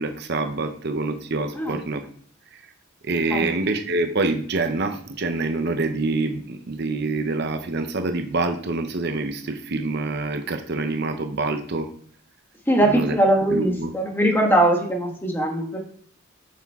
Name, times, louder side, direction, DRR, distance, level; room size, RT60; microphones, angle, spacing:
voice 1, 0.0-2.1 2.5-2.6 3.0-11.9 12.8-13.2 13.5-14.0, right 3 dB, 50° right, 6 dB, 0.7 m, -26 dB
voice 2, 12.7-15.8, right 1 dB, 10° left, 1 dB, 1.4 m, -21 dB
8.9 x 6.0 x 3.6 m, 0.62 s
head